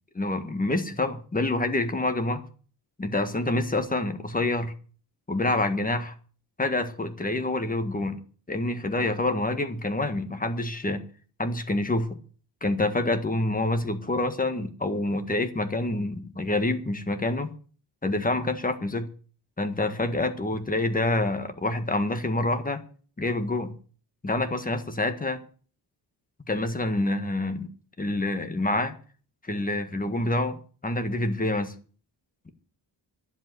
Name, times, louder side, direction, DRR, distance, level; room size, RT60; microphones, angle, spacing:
voice 1, 0.1-2.4 3.0-4.7 5.3-6.1 6.6-8.2 8.5-11.0 11.4-12.2 12.6-17.5 18.0-19.1 19.6-22.8 23.2-23.7 24.2-25.4 26.5-27.7 28.0-28.9 29.4-31.7, left 2 dB, 20° left, 1.6 m, -27 dB
11.0 x 8.0 x 9.3 m
wide cardioid pair, 135°, 43 cm